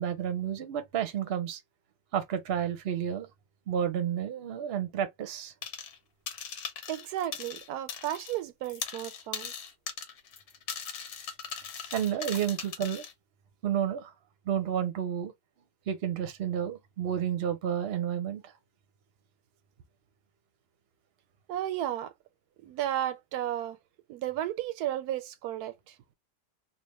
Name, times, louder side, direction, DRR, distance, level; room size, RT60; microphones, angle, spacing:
voice 1, 0.0-1.6 2.1-3.3 3.7-5.5 11.9-13.0 13.6-14.1 14.5-15.3 15.9-18.4, right 9 dB, 50° right, 0.8 m, -31 dB
sound 1, 5.6-6.0 6.3-8.4 8.6-13.1, left 7 dB, 80° left, 1.3 m, -39 dB
voice 2, 6.9-9.5 21.5-22.1 22.6-23.8 24.1-25.9, right 12 dB, 85° right, 1.1 m, -33 dB
3.3 x 2.4 x 2.9 m
omnidirectional pair, 1.6 m